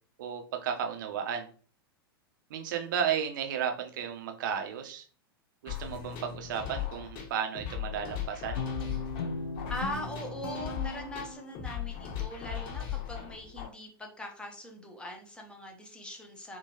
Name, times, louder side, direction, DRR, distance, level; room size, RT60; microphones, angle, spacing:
voice 1, 0.2-1.5 2.5-5.0 5.6-8.6, right 8 dB, 55° right, 4 dB, 0.8 m, -33 dB
sound 1, 5.7-13.7, left 10 dB, 40° left, 1.4 m, -38 dB
Guitar, 8.6-11.8, left 2 dB, 75° left, 0.6 m, -38 dB
voice 2, 9.7-16.6, left 1 dB, 10° left, 2 dB, 0.8 m, -41 dB
3.7 x 2.4 x 2.8 m, 0.40 s
figure-of-eight pair, 95°, 13 cm